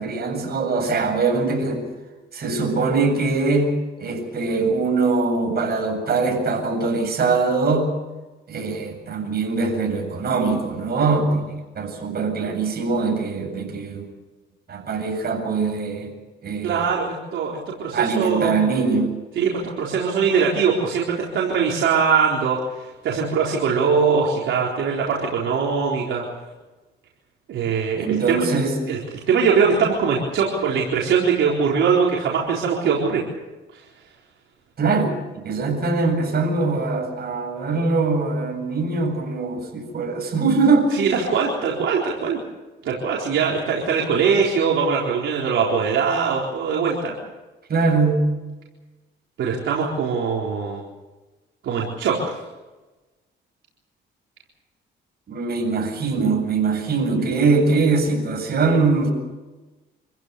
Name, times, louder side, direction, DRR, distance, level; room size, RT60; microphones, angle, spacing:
voice 1, 0.0-1.9 2.3-7.9 8.5-14.0 14.7-16.1 16.4-16.9 17.9-19.2 28.0-28.8 34.8-41.0 47.7-48.4 55.3-59.1, right 4 dB, 50° right, 3 dB, 7.8 m, -22 dB
voice 2, 16.6-18.5 19.4-19.5 19.8-26.2 27.5-28.4 28.9-33.2 40.9-42.4 42.8-47.1 49.4-50.8 51.6-52.4, right 6 dB, 75° right, -3 dB, 4.2 m, -21 dB
27.0 x 15.5 x 8.4 m, 1.2 s
cardioid pair, 90°, 20 cm